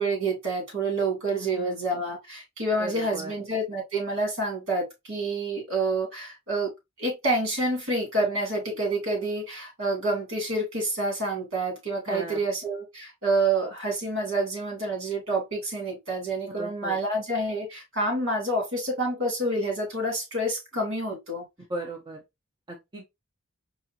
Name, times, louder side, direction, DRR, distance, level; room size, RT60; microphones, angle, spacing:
voice 1, 0.0-6.7 7.0-21.4, right 2 dB, 75° right, 2.7 m, -28 dB
voice 2, 1.4-1.7 2.8-3.3 12.1-12.4 16.6-17.0 21.7-22.2 22.7-23.0, right 2 dB, 20° right, 0.7 m, -36 dB
4.8 x 2.6 x 2.7 m
head